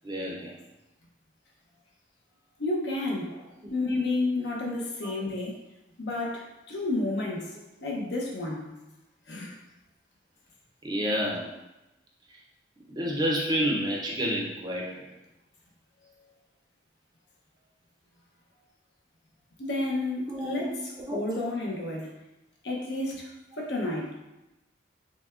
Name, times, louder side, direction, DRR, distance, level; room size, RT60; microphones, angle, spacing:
voice 1, 0.0-0.6 3.6-3.7 5.0-5.1 10.8-11.5 12.3-12.4 12.9-15.1 20.3-21.2, equal, 20° right, -3 dB, 0.5 m, -30 dB
voice 2, 2.6-5.6 6.0-8.7 9.3-9.6 19.6-22.1 22.6-23.3 23.6-24.1, left 2 dB, 65° left, -2 dB, 0.8 m, -31 dB
5.9 x 2.2 x 2.4 m, 0.98 s
head